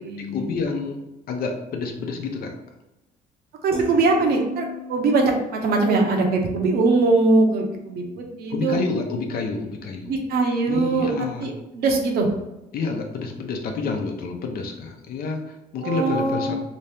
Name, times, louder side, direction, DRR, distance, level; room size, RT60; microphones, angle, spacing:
voice 1, 0.2-1.0 1.3-2.5 8.5-10.1 10.7-11.5 12.7-16.6, left 4 dB, 60° left, 4 dB, 0.7 m, -28 dB
voice 2, 3.6-8.8 10.0-11.1 11.4-12.3 15.8-16.6, right 3 dB, 65° right, 2 dB, 0.8 m, -21 dB
sound 1, 3.7-10.0 10.3-10.7, right 2 dB, 35° right, 0.8 m, -38 dB
3.0 x 2.8 x 3.4 m, 0.98 s
cardioid pair, 110°, 17 cm